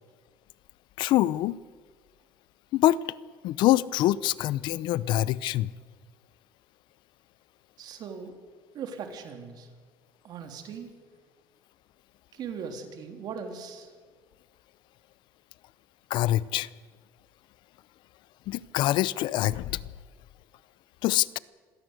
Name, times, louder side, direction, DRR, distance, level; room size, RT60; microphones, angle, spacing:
voice 1, 1.0-1.6 2.7-3.0 3.4-5.7 16.1-16.7 18.5-19.8 21.0-21.4, left 15 dB, 70° left, 0.7 m, -25 dB
voice 2, 7.8-8.4 8.7-9.7 10.2-11.0 12.3-13.9, right 6 dB, 55° right, 3.4 m, -39 dB
26.0 x 17.0 x 8.2 m
cardioid pair, 120°, 8 cm